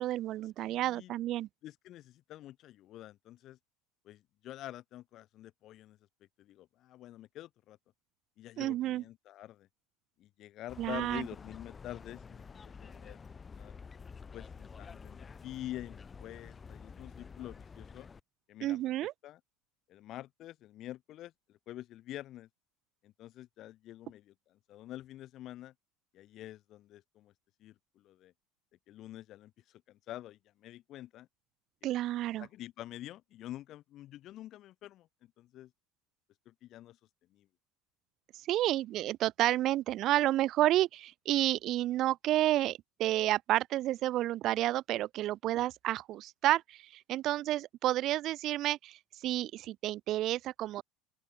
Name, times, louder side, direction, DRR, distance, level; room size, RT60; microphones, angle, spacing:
voice 1, 0.0-1.5 8.6-9.0 10.8-11.2 18.6-19.1 31.8-32.5 38.3-50.8, right 14 dB, 40° right, 0.7 m, -30 dB
voice 2, 0.6-1.1 1.6-3.6 4.0-6.0 6.4-7.8 8.4-9.7 10.2-12.4 12.8-13.2 13.6-13.8 14.3-18.1 18.5-18.9 19.2-19.4 19.9-22.5 23.0-25.7 26.1-27.3 27.6-28.3 28.9-31.3 31.8-31.9 32.4-35.7 36.5-37.0 37.3-37.5, left 14 dB, 40° left, 3.8 m, -47 dB
sound 1, 10.7-18.2, left 5 dB, 15° left, 5.6 m, -49 dB
open air
cardioid pair, 160°, 0 cm